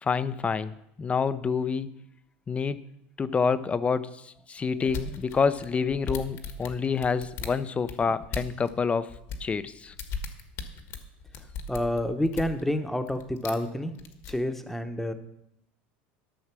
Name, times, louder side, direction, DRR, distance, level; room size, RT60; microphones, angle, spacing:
voice 1, 0.0-2.0 2.5-2.8 3.2-9.1 9.4-9.9, left 5 dB, 20° left, 14 dB, 0.6 m, -28 dB
sound 1, 4.9-8.7 9.1-12.6 13.1-13.7 14.0-14.3, left 5 dB, 55° left, 1.6 m, -37 dB
voice 2, 11.7-15.1, left 1 dB, 5° left, 8 dB, 1.1 m, -29 dB
13.0 x 6.4 x 6.1 m, 0.78 s
supercardioid pair, 110°, 6 cm